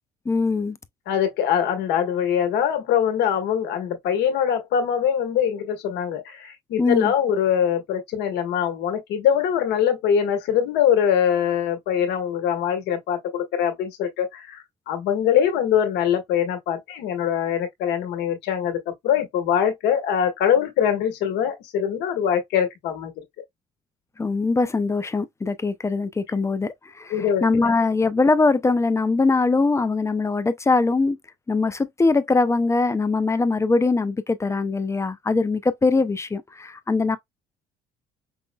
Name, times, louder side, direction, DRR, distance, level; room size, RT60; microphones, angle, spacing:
voice 1, 0.3-0.8 6.8-7.1 24.2-31.2 31.5-37.2, left 3 dB, 15° left, 0.4 m, -22 dB
voice 2, 1.1-23.1 27.1-27.7, left 8 dB, 85° left, 1.3 m, -23 dB
5.4 x 2.0 x 2.2 m
cardioid pair, 110°, 17 cm